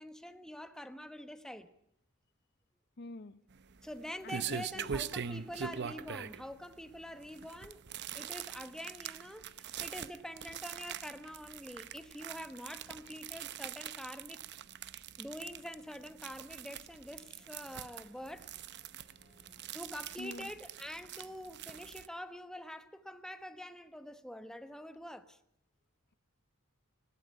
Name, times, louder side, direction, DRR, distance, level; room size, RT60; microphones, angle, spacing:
voice 1, 0.0-1.7 3.8-7.8 8.1-14.4 15.2-18.5 19.7-25.4, equal, 5° left, 1.2 m, -46 dB
voice 2, 3.0-3.4 4.2-4.9 5.3-5.4 6.6-6.7 7.1-7.2 20.2-20.5, left 2 dB, 50° left, 0.8 m, -47 dB
sound 1, 3.5-22.1, right 8 dB, 55° right, 0.8 m, -43 dB
sound 2, 16.9-22.1, left 2 dB, 30° left, 3.2 m, -69 dB
20.0 x 16.5 x 9.4 m
head